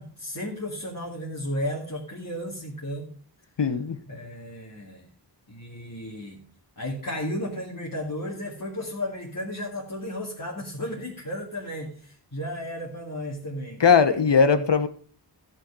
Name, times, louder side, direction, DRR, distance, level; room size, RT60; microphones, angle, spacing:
voice 1, 0.0-3.1 4.1-5.1 5.5-6.4 6.8-14.7, left 1 dB, 50° left, 2.5 m, -34 dB
voice 2, 3.6-4.0 13.8-14.9, left 5 dB, 75° left, 1.2 m, -19 dB
15.0 x 6.4 x 4.8 m
wide cardioid pair, 70°, 42 cm